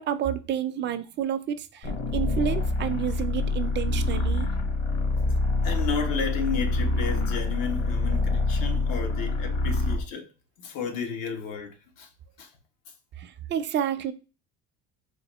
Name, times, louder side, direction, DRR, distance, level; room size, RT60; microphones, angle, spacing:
voice 1, 0.0-4.5 13.2-14.1, right 9 dB, 35° right, 0.5 m, -30 dB
sound 1, 1.8-10.1, left 2 dB, 55° left, 1.3 m, -26 dB
voice 2, 5.6-10.3 10.6-12.1 12.4-12.5, left 5 dB, 75° left, 1.1 m, -33 dB
3.9 x 2.6 x 2.9 m
cardioid pair, 115°, 32 cm